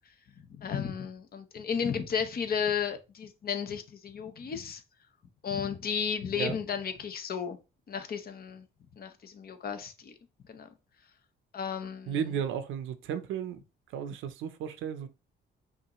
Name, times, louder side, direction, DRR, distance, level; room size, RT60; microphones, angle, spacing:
voice 1, 0.5-4.8 5.4-7.6 7.9-8.7 9.0-10.1 10.5-10.7 11.5-12.2, left 7 dB, 50° left, 0.8 m, -33 dB
voice 2, 12.1-13.6 13.9-15.1, right 8 dB, 85° right, 0.7 m, -34 dB
5.6 x 2.7 x 3.0 m
cardioid pair, 90°, 20 cm